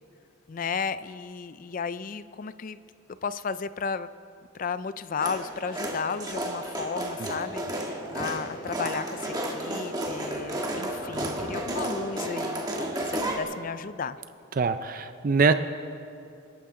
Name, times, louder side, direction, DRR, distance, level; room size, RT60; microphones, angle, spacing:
voice 1, 0.5-2.8 3.2-4.1 4.5-14.2, left 5 dB, 40° left, 14 dB, 0.3 m, -34 dB
sound 1, 5.2-13.4, right 1 dB, 20° right, 1.3 m, -32 dB
voice 2, 14.6-15.5, right 4 dB, 40° right, 10 dB, 0.4 m, -23 dB
28.0 x 11.5 x 3.8 m, 2.7 s
head